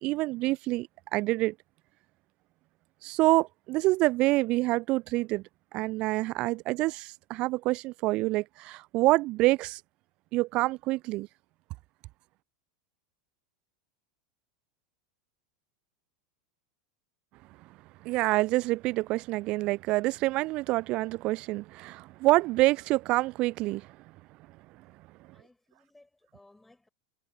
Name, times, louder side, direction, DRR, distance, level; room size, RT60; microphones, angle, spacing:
voice 1, 0.0-1.5 3.0-5.4 5.7-9.8 10.3-11.3 18.0-23.9, right 20 dB, 40° right, 0.4 m, -27 dB
voice 2, 25.3-26.9, left 2 dB, 5° left, 7.1 m, -60 dB
figure-of-eight pair, 85°, 3 cm